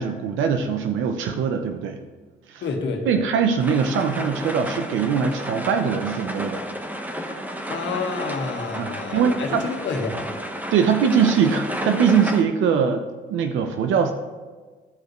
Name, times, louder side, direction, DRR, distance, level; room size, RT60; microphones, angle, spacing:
voice 1, 0.0-2.0 2.5-2.6 3.1-6.6 8.8-8.9 9.1-9.6 10.7-13.0 13.3-14.1, right 6 dB, 85° right, 6 dB, 0.7 m, -21 dB
voice 2, 2.6-3.3 7.7-10.3, left 4 dB, 65° left, 2 dB, 1.6 m, -28 dB
sound 1, 3.6-12.4, equal, 10° right, 1.1 m, -32 dB
14.0 x 5.1 x 3.1 m, 1.4 s
cardioid pair, 90°, 20 cm